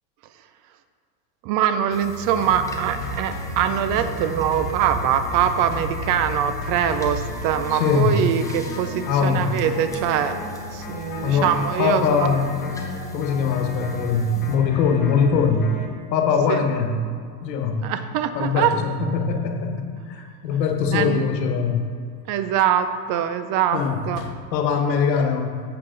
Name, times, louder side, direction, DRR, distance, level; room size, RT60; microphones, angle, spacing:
voice 1, 1.4-12.4 16.5-16.6 17.8-18.8 20.9-21.2 22.3-24.2, right 9 dB, 40° right, 10 dB, 0.5 m, -23 dB
sound 1, 1.9-14.6, left 2 dB, 5° left, 0.6 m, -38 dB
sound 2, 2.4-15.9, left 1 dB, 40° left, 1.6 m, -34 dB
voice 2, 7.7-8.2 9.1-9.6 11.2-11.5 11.8-12.7 13.1-15.7 16.1-17.0 17.4-17.9 18.3-21.9 23.7-25.6, left 6 dB, 90° left, 4 dB, 1.3 m, -22 dB
7.7 x 7.5 x 3.8 m, 2.2 s
supercardioid pair, 130°, 49 cm